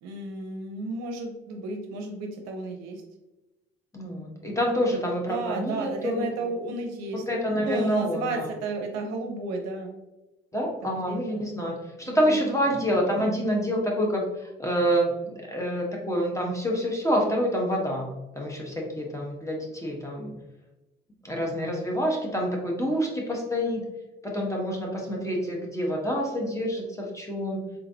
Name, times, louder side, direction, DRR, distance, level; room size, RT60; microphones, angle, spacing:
voice 1, 0.0-3.0 5.3-7.2 7.6-10.0 10.8-11.4 12.0-12.4, right 3 dB, 60° right, 3 dB, 0.7 m, -33 dB
voice 2, 3.9-6.3 7.3-8.5 10.5-18.1 18.3-20.3 21.2-23.8 24.2-27.6, equal, 10° left, -1 dB, 1.2 m, -27 dB
3.8 x 3.7 x 2.8 m, 1.0 s
figure-of-eight pair, 50°, 29 cm